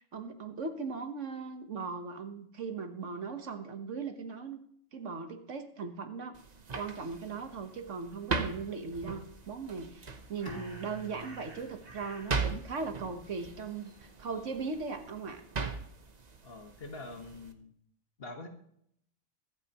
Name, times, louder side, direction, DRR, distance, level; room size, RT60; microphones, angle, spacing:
voice 1, 0.1-4.6 4.9-6.3 6.7-15.4, right 4 dB, 65° right, 7 dB, 1.5 m, -38 dB
sound 1, 6.3-17.5, right 4 dB, 35° right, 1.0 m, -40 dB
Bird, 9.9-15.9, right 2 dB, 85° right, 3.2 m, -57 dB
Bowed string instrument, 10.5-13.5, right 2 dB, 15° left, 1.4 m, -51 dB
voice 2, 16.4-17.7 18.2-18.5, left 2 dB, 45° left, 3 dB, 1.8 m, -45 dB
23.5 x 8.8 x 3.0 m, 0.70 s
omnidirectional pair, 1.4 m